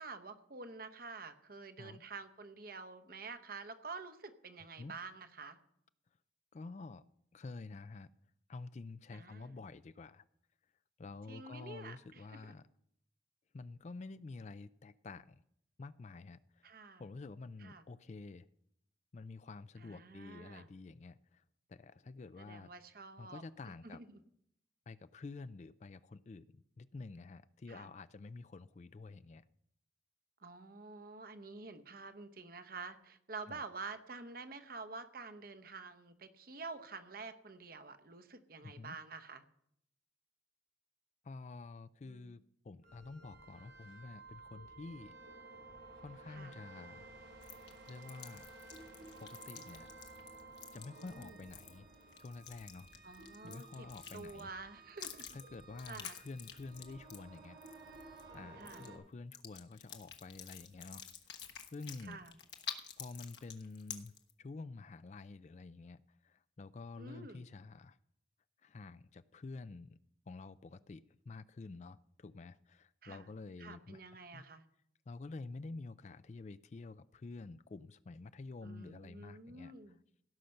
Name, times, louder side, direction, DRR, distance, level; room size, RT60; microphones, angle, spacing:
voice 1, 0.0-5.6 9.1-9.5 11.3-12.5 16.6-17.0 17.6-17.8 19.8-20.7 22.4-23.4 23.8-24.2 27.7-27.9 30.4-39.4 42.0-42.4 46.3-46.5 51.0-51.4 53.0-53.9 54.1-55.3 55.9-56.2 58.6-58.8 62.0-62.4 67.0-67.4 73.0-73.3 73.6-74.6 78.6-80.0, right 4 dB, 50° right, 9 dB, 0.9 m, -49 dB
voice 2, 6.5-7.0 7.3-8.1 8.5-10.2 11.0-12.6 13.5-15.4 15.8-16.7 17.0-18.5 19.1-21.4 21.7-22.7 23.2-24.0 24.9-29.4 33.5-33.6 38.6-39.0 41.2-45.1 45.9-47.1 47.9-48.5 49.2-49.9 50.7-51.9 52.2-52.9 53.4-54.5 55.3-57.6 58.3-61.0 61.7-62.2 63.0-64.1 64.4-68.0 68.6-70.0 70.3-74.0 74.3-74.4 75.1-79.7, left 3 dB, 40° left, 15 dB, 0.3 m, -49 dB
sound 1, 42.8-59.0, right 3 dB, 85° right, 4.9 m, -55 dB
sound 2, 47.4-54.5 55.0-58.3 58.6-58.9 59.3-64.3, left 8 dB, 65° left, 1.2 m, -49 dB
17.0 x 5.8 x 6.5 m, 0.73 s
head